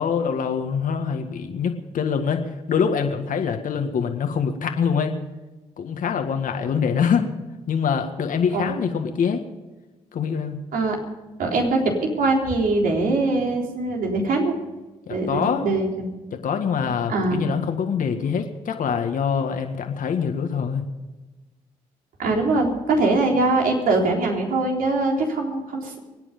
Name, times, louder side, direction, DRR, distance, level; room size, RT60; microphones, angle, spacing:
voice 1, 0.0-5.2 5.8-7.3 7.7-9.4 10.1-10.6 15.1-15.7 16.3-20.8, left 6 dB, 65° left, 5 dB, 1.8 m, -24 dB
voice 2, 11.4-14.5 15.1-16.1 17.1-17.4 22.2-26.0, right 2 dB, 70° right, 1 dB, 3.7 m, -22 dB
24.5 x 9.7 x 5.3 m, 1.1 s
hypercardioid pair, 45°, 15 cm